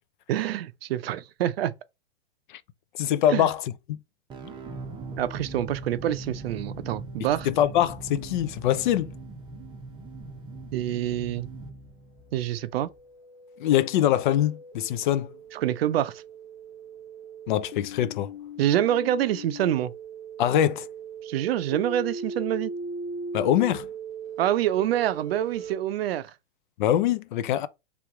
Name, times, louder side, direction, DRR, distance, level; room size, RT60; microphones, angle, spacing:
voice 1, 0.3-1.7 3.3-3.5 5.2-7.5 10.7-11.5 12.3-12.9 15.5-16.2 18.6-19.9 21.2-22.7 24.4-26.3, right 12 dB, 60° right, 0.5 m, -26 dB
voice 2, 2.9-3.6 3.9-4.0 7.4-9.1 13.6-15.3 17.5-18.3 20.4-20.9 23.3-23.9 26.8-27.7, left 11 dB, 45° left, 0.4 m, -23 dB
sound 1, 4.3-13.0, right 3 dB, 15° right, 0.6 m, -40 dB
sound 2, 12.5-25.7, right 3 dB, 75° left, 1.3 m, -39 dB
3.4 x 3.1 x 4.8 m
hypercardioid pair, 120°, 35 cm